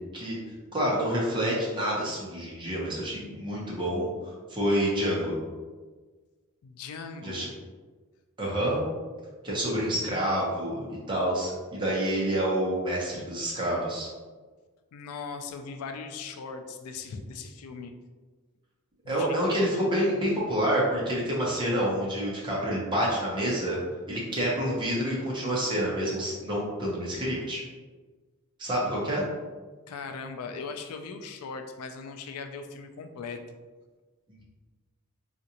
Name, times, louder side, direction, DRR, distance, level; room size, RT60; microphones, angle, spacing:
voice 1, 0.7-5.3 7.2-7.5 8.4-8.8 9.4-14.1 19.1-23.8 24.1-27.6 28.6-29.2, equal, 20° right, -5 dB, 0.8 m, -28 dB
voice 2, 6.6-7.5 14.9-17.9 19.0-19.5 29.9-33.4, left 4 dB, 80° left, 6 dB, 0.4 m, -39 dB
3.8 x 2.5 x 2.8 m, 1.4 s
head